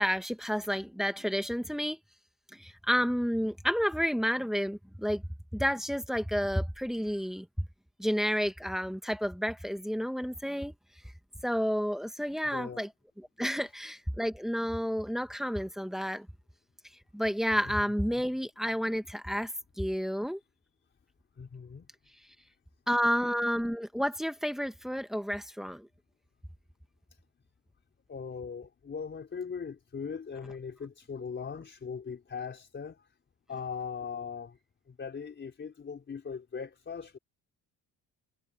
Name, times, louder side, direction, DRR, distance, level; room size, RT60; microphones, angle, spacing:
voice 1, 0.0-2.0 2.5-5.2 5.5-7.6 8.0-10.7 11.4-12.9 13.4-16.3 17.1-19.5 19.8-20.4 22.9-25.9, equal, ahead, 1.5 m, -30 dB
voice 2, 12.5-12.8 17.7-17.8 18.1-18.2 21.3-21.9 28.1-33.1 33.5-34.6 34.9-37.2, left 6 dB, 30° left, 4.4 m, -40 dB
cardioid pair, 135°, 39 cm